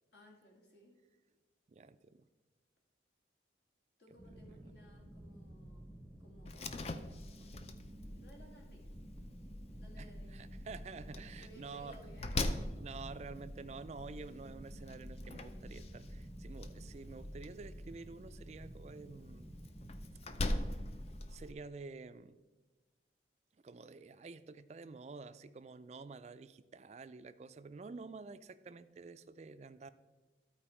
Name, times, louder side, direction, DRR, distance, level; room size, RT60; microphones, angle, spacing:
voice 1, 0.1-1.0 4.0-7.5 8.1-8.9 9.7-10.3 11.4-12.4, equal, 70° left, -1 dB, 2.3 m, -60 dB
voice 2, 1.7-2.2 10.0-12.0 12.8-19.5 20.4-20.9 21.3-22.4 23.5-29.9, right 4 dB, 35° right, 12 dB, 0.3 m, -49 dB
sound 1, 4.2-21.2, right 1 dB, 10° left, 0.8 m, -52 dB
Slam, 6.5-21.5, left 2 dB, 35° left, 0.4 m, -43 dB
13.0 x 4.5 x 4.4 m, 1.2 s
head